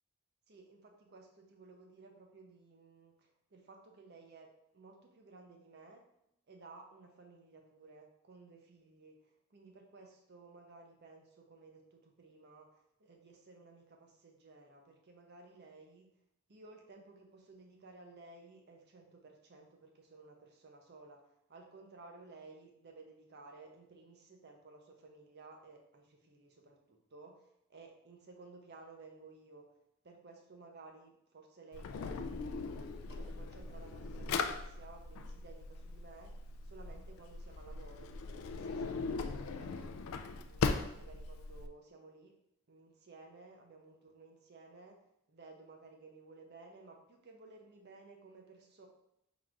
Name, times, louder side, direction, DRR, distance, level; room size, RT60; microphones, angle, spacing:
voice 1, 0.5-6.0 6.5-16.1 16.5-21.2 21.5-29.7 30.0-40.7 41.0-42.3 42.7-45.0 45.3-48.9, right 3 dB, 50° right, 2 dB, 0.7 m, -56 dB
Drawer open or close, 31.7-41.7, left 4 dB, 75° left, 0.3 m, -39 dB
3.9 x 2.5 x 4.5 m, 0.79 s
head